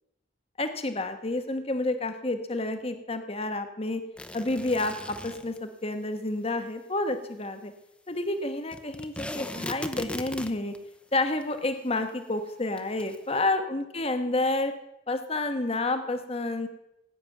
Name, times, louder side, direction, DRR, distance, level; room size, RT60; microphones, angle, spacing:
voice 1, 0.6-4.0 4.3-7.7 8.1-10.7 11.1-14.7 15.1-16.7, left 2 dB, 35° left, 8 dB, 1.2 m, -29 dB
sound 1, 4.2-5.6 8.7-10.8 11.4-11.5 11.7-11.8 12.8-13.2, left 1 dB, 5° left, 0.8 m, -38 dB
18.5 x 8.9 x 7.2 m, 0.88 s
head